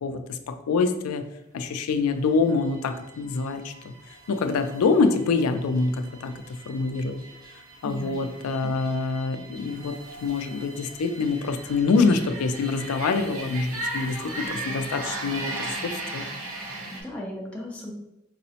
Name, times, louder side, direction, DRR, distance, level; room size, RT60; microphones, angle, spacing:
voice 1, 0.0-1.2 1.5-3.9 4.3-7.2 7.8-16.2, left 4 dB, 80° left, 8 dB, 0.4 m, -25 dB
sound 1, 1.9-17.0, right 2 dB, 70° right, 0.8 m, -38 dB
voice 2, 7.8-8.2 16.6-17.9, left 1 dB, 5° left, -3 dB, 0.4 m, -37 dB
4.6 x 2.0 x 2.7 m, 0.88 s
head